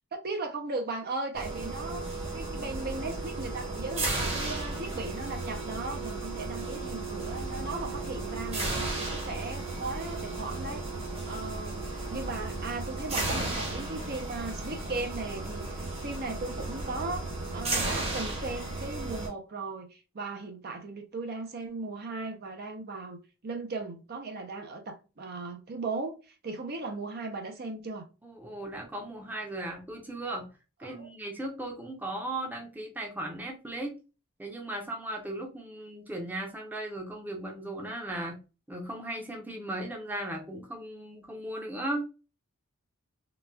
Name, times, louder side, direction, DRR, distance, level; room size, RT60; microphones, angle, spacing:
voice 1, 0.1-2.0 2.3-10.8 11.3-17.3 17.5-23.2 23.4-28.1 31.0-31.1, right 3 dB, 45° right, 0.6 m, -37 dB
sound 1, 1.3-19.3, right 2 dB, 30° right, 1.0 m, -34 dB
voice 2, 28.2-30.5 30.8-34.0 34.4-38.4 38.7-42.0, right 1 dB, 10° right, 0.7 m, -37 dB
3.9 x 2.3 x 2.2 m
head